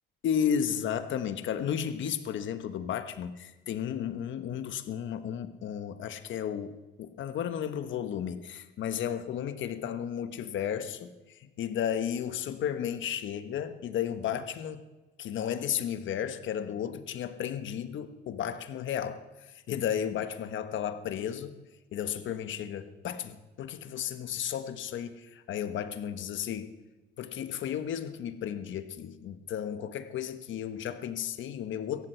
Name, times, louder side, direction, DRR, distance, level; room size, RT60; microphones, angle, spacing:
voice 1, 0.2-14.8 15.2-21.5 21.9-26.8 27.2-32.1, left 9 dB, 75° left, 10 dB, 1.2 m, -33 dB
18.0 x 14.5 x 4.5 m, 1.1 s
cardioid pair, 90°, 20 cm